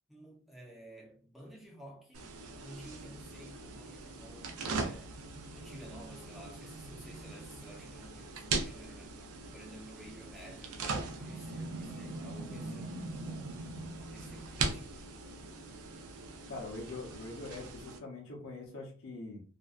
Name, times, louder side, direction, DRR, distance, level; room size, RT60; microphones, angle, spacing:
voice 1, 0.1-2.3 2.6-13.5 14.1-15.1, equal, ahead, 0.5 m, -53 dB
sound 1, 2.1-18.0, right 3 dB, 75° right, 0.5 m, -40 dB
voice 2, 12.5-12.8 16.5-19.4, left 2 dB, 65° left, 0.7 m, -43 dB
2.6 x 2.2 x 2.3 m
head